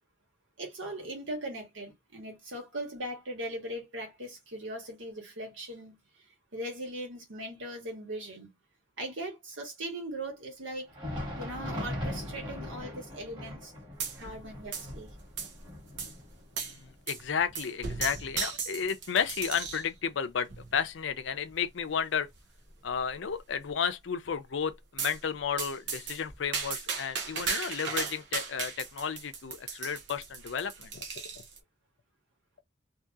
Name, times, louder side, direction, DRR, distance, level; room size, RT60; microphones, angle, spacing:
voice 1, 0.6-6.3 6.5-8.5 9.0-10.9 11.4-13.7 14.1-15.2, right 1 dB, 85° right, 1.5 m, -39 dB
Thunder, 10.8-20.2 20.6-20.7 21.4-21.6 22.6-22.7, left 1 dB, 25° right, 1.6 m, -41 dB
sound 1, 14.0-14.4 14.7-15.6 16.0-16.1 16.6-16.8 17.1-17.2 17.5-19.9 20.5-20.9 21.5-21.6 21.9-22.0 22.3-22.4 22.9-23.3 25.0-25.2 25.6-31.6, right 5 dB, 65° right, 0.9 m, -36 dB
voice 2, 16.6-22.3 22.8-31.0, left 7 dB, 70° left, 0.5 m, -32 dB
2.8 x 2.7 x 2.3 m
head